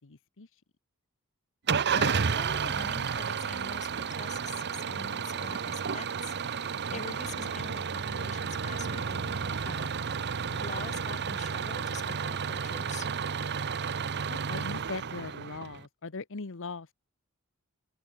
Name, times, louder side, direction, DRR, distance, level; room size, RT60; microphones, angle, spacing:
voice 1, 0.0-0.6 6.9-7.5 14.3-16.9, left 4 dB, 60° left, 1.0 m, -41 dB
Engine starting / Idling, 1.7-15.8, right 6 dB, 50° right, 0.9 m, -32 dB
voice 2, 1.9-10.3 10.6-13.1, left 4 dB, 35° left, 2.0 m, -45 dB
open air
head